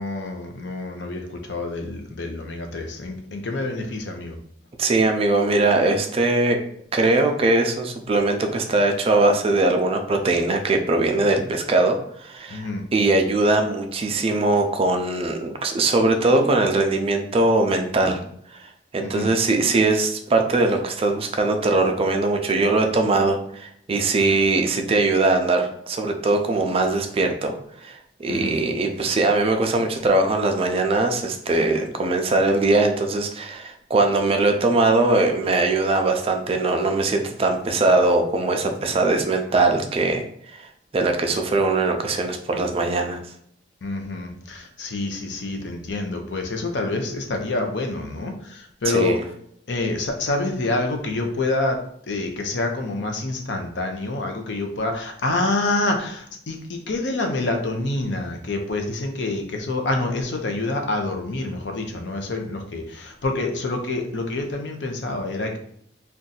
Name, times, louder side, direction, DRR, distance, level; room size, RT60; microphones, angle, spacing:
voice 1, 0.0-4.4 12.5-12.8 19.0-19.3 24.2-24.5 28.3-28.6 43.8-49.3 49.7-65.6, left 2 dB, 70° left, 4 dB, 0.6 m, -27 dB
voice 2, 4.8-6.6 6.9-18.2 18.5-18.6 18.9-27.5 27.8-40.6 40.9-43.2 48.9-49.2, right 2 dB, 30° right, 4 dB, 0.4 m, -21 dB
2.6 x 2.3 x 3.9 m, 0.67 s
head